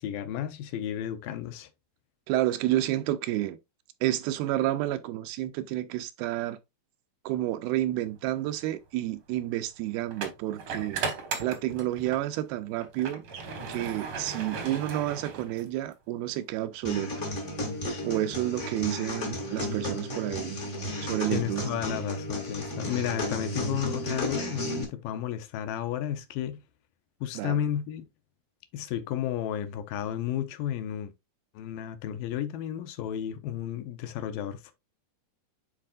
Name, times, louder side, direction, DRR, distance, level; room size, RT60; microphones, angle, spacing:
voice 1, 0.0-1.7 21.3-26.6 27.2-28.1 28.7-31.1 31.6-34.7, left 10 dB, 75° left, 2.2 m, -32 dB
voice 2, 2.3-3.6 4.0-6.6 7.3-11.0 11.4-13.2 13.7-17.3 18.0-20.6 21.0-21.6 27.4-27.6, right 14 dB, 85° right, 2.5 m, -30 dB
sound 1, 8.0-8.2 10.1-12.3 12.7-15.9, right 5 dB, 60° right, 1.4 m, -36 dB
sound 2, 16.8-24.8, left 1 dB, 40° left, 1.1 m, -33 dB
10.0 x 4.2 x 2.3 m
omnidirectional pair, 4.4 m